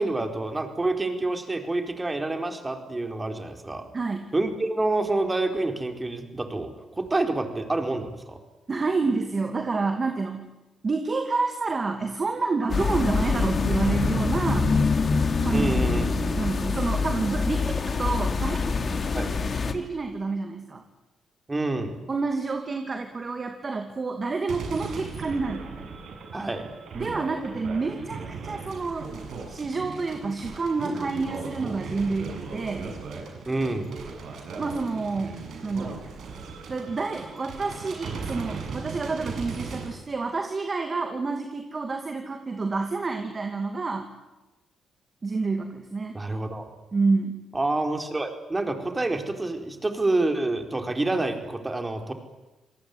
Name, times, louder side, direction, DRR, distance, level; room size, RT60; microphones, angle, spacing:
voice 1, 0.0-3.9 4.3-8.4 15.5-16.1 19.1-19.3 21.5-21.9 26.3-26.6 33.5-33.9 46.1-46.7 47.5-52.1, right 2 dB, 20° right, 5 dB, 4.5 m, -27 dB
voice 2, 3.9-4.3 8.7-10.5 10.8-14.7 15.4-16.0 16.4-17.7 18.0-18.6 19.7-20.8 22.1-25.9 26.9-29.1 29.5-32.9 34.6-36.0 36.7-44.1 45.2-46.2 46.9-47.4, right 3 dB, 35° right, 5 dB, 2.5 m, -28 dB
sound 1, 12.7-19.7, left 4 dB, 45° left, 2.8 m, -25 dB
sound 2, 24.5-39.9, right 4 dB, 70° right, 6.3 m, -37 dB
27.0 x 19.0 x 9.7 m, 1.1 s
cardioid pair, 70°, 0 cm